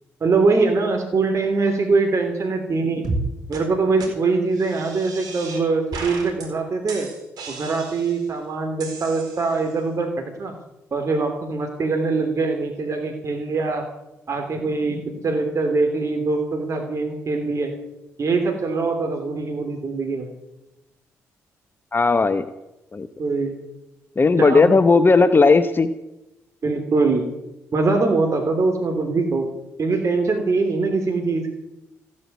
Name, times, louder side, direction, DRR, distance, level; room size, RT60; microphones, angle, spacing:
voice 1, 0.2-3.1 3.5-7.1 7.5-10.5 10.9-13.8 14.3-17.7 18.2-20.3 23.2-23.5 24.4-24.7 26.6-27.2 27.7-29.5 29.8-31.5, right 3 dB, 50° right, 3 dB, 3.1 m, -22 dB
sound 1, 3.0-3.2 3.5-3.6 4.0-4.1 4.5-5.6 5.9-6.5 6.9-8.3 8.8-9.7, right 3 dB, 70° right, 4.2 m, -33 dB
voice 2, 21.9-22.5 22.9-23.1 24.2-25.9, left 4 dB, 30° left, 11 dB, 1.0 m, -16 dB
15.5 x 8.7 x 9.5 m, 0.93 s
hypercardioid pair, 50°, 7 cm